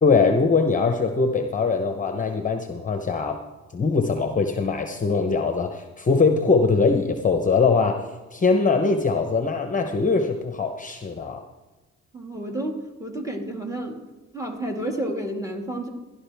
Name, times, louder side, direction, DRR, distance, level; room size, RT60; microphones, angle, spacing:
voice 1, 0.0-3.4 3.7-8.0 8.3-11.4, left 4 dB, 25° left, 5 dB, 0.9 m, -22 dB
voice 2, 12.1-14.1 14.3-15.9, right 1 dB, 10° right, 2 dB, 2.0 m, -30 dB
16.0 x 11.5 x 3.5 m, 1.1 s
cardioid pair, 90°, 30 cm